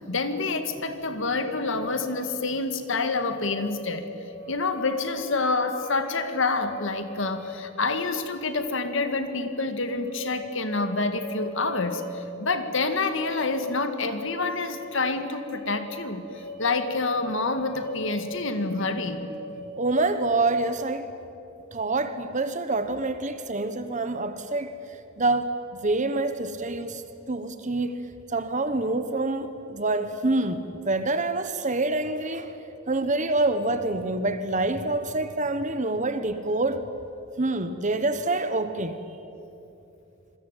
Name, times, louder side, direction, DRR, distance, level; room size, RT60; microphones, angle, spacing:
voice 1, 0.1-4.1 4.5-19.3, left 3 dB, 60° left, 2.0 m, -28 dB
sound 1, 1.3-20.1, left 2 dB, 50° right, 2.6 m, -40 dB
voice 2, 19.8-21.1 21.7-24.7 25.2-25.6 25.8-27.0 27.3-28.0 28.3-32.5 32.9-36.8 37.4-39.0, right 2 dB, 35° right, 1.2 m, -26 dB
27.0 x 21.5 x 9.2 m
head